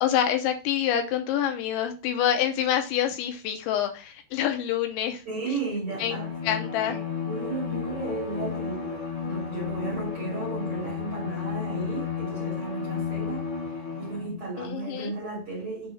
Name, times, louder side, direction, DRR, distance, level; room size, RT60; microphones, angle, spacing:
voice 1, 0.0-5.2 6.0-6.2 6.4-7.0 14.6-15.1, left 10 dB, 80° left, 3.0 m, -26 dB
voice 2, 5.3-6.3 6.8-13.5 14.0-15.9, right 3 dB, 40° right, 2.1 m, -34 dB
Bowed string instrument, 5.9-14.4, left 6 dB, 45° left, 2.8 m, -33 dB
7.0 x 3.5 x 5.5 m
omnidirectional pair, 5.4 m